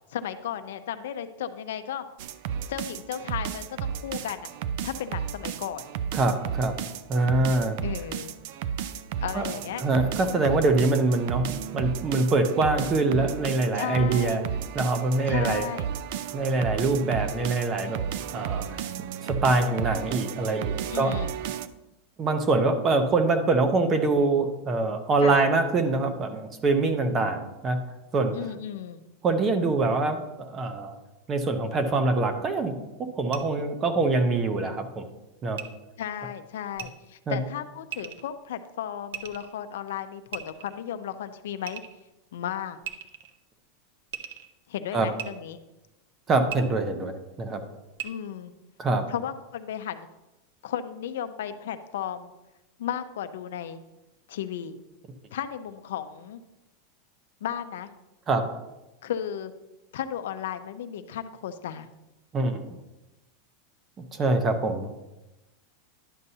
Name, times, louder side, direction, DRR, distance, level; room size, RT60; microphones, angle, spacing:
voice 1, 0.1-2.0 2.7-4.5 4.8-5.9 7.8-8.4 9.2-9.8 13.1-13.3 13.7-14.4 15.3-15.9 20.9-21.4 25.2-25.5 28.3-29.0 36.0-41.8 42.3-42.8 44.7-45.6 48.0-48.5 49.1-50.1 50.6-52.3 52.8-53.8 54.3-54.8 55.3-56.4 57.4-57.9 59.0-59.5 59.9-61.9, left 9 dB, 85° left, 9 dB, 0.6 m, -34 dB
sound 1, 2.2-21.7, right 8 dB, 50° right, 0.4 m, -33 dB
voice 2, 6.1-6.8 7.1-7.8 9.3-9.4 9.8-14.4 14.7-15.6 16.3-18.0 18.3-18.8 19.2-21.1 22.2-27.8 28.1-28.3 29.2-30.9 31.3-32.7 33.1-35.1 35.4-35.6 37.3-37.4 44.9-45.1 46.3-47.6 48.8-49.0 58.3-58.5 62.3-62.8 64.1-64.9, right 3 dB, 20° right, 8 dB, 0.7 m, -24 dB
sound 2, 33.3-33.4 35.5-35.6 36.7-36.9 37.9-38.2 39.1-39.5 40.3-40.8 41.7-42.0 42.8-43.4 44.1-44.5 45.2-45.3 46.5-46.6 47.9-48.1, right 11 dB, 75° right, 0.8 m, -37 dB
11.0 x 6.7 x 2.8 m, 0.99 s
supercardioid pair, 170°, 0 cm